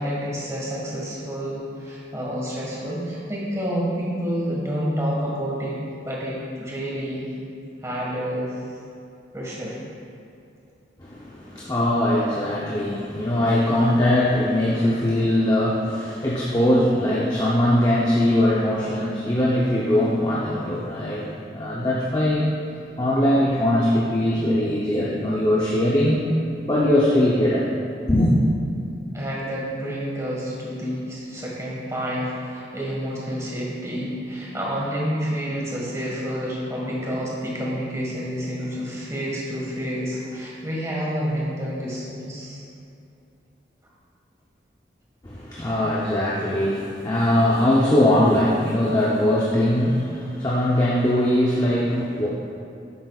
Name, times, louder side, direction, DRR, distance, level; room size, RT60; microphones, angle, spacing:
voice 1, 0.0-5.8 6.0-7.3 7.8-8.5 9.3-9.8 29.1-42.6, equal, 15° right, -5 dB, 1.7 m, -29 dB
voice 2, 11.0-22.6 23.0-26.3 26.7-27.7 28.1-28.3 45.2-52.3, left 1 dB, 20° left, -6 dB, 0.7 m, -21 dB
11.0 x 7.8 x 2.4 m, 2.6 s
head